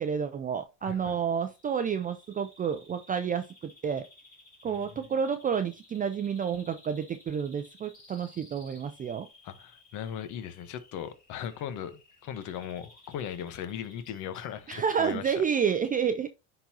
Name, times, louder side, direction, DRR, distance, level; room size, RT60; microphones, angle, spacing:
voice 1, 0.0-4.1 4.6-9.3 14.7-16.3, right 7 dB, 25° right, 0.4 m, -30 dB
voice 2, 0.8-1.2 4.6-5.1 9.4-15.4, left 9 dB, 55° left, 1.1 m, -38 dB
Bird vocalization bird call bird song, 1.3-15.3, left 1 dB, 25° left, 3.7 m, -57 dB
10.0 x 4.0 x 2.8 m
supercardioid pair, 100°, 36 cm